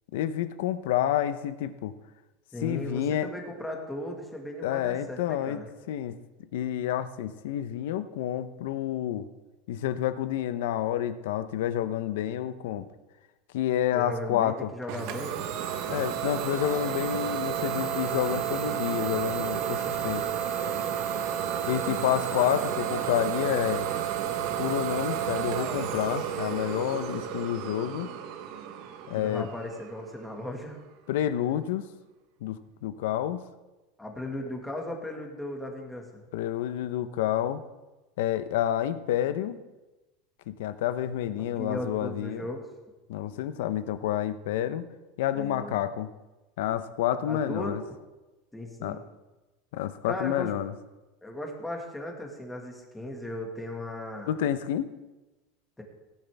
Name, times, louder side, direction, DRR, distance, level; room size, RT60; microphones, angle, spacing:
voice 1, 0.1-1.9 2.6-3.3 4.6-5.6 5.9-6.2 6.5-9.3 9.7-12.9 13.5-14.7 15.9-20.2 21.7-23.9 24.5-28.1 29.1-29.5 31.1-31.9 32.4-33.4 36.3-37.6 38.2-39.6 40.5-42.4 43.1-44.9 45.2-46.1 46.6-47.8 48.8-49.0 49.7-50.7 54.3-54.9, left 11 dB, 80° left, 12 dB, 0.8 m, -29 dB
voice 2, 2.5-5.7 13.9-15.4 24.5-24.6 29.1-30.8 34.0-36.2 41.4-42.6 45.3-45.8 47.2-47.8 48.5-49.0 50.1-50.5 51.2-54.4 55.8-55.9, left 1 dB, 5° left, 1 dB, 1.8 m, -37 dB
Idling / Domestic sounds home sounds, 14.9-30.4, right 9 dB, 55° right, 1.1 m, -31 dB
17.5 x 9.9 x 3.5 m, 1.1 s
supercardioid pair, 155°, 0 cm